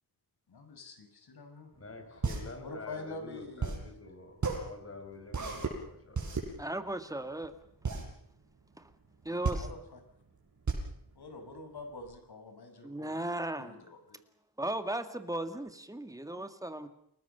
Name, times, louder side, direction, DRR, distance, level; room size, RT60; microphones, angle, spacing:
voice 1, 0.5-1.7 2.6-3.7 9.5-10.0 11.2-14.2, left 3 dB, 70° left, 6 dB, 6.2 m, -46 dB
sound 1, 1.7-12.1, right 4 dB, 45° right, 7.8 m, -35 dB
voice 2, 1.8-6.4, left 3 dB, 35° left, 6 dB, 5.2 m, -47 dB
voice 3, 6.6-7.5 8.8-8.9 9.2-9.7 12.8-13.8 14.6-16.9, right 1 dB, 10° right, 8 dB, 1.9 m, -36 dB
30.0 x 20.0 x 6.8 m, 0.71 s
wide cardioid pair, 180°, 40 cm